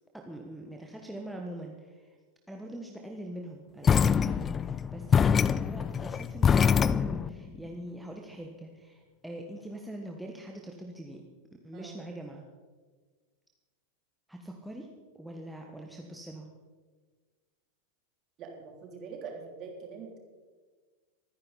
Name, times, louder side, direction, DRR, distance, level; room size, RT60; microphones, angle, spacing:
voice 1, 0.1-2.2 2.5-11.2 11.6-12.4 14.3-16.5, right 1 dB, ahead, 0 dB, 1.4 m, -43 dB
sound 1, 3.8-7.3, left 7 dB, 20° left, 0.4 m, -24 dB
voice 2, 18.4-20.2, right 5 dB, 35° right, 1 dB, 3.4 m, -43 dB
24.0 x 10.5 x 4.2 m, 1.4 s
figure-of-eight pair, 90°, 0 cm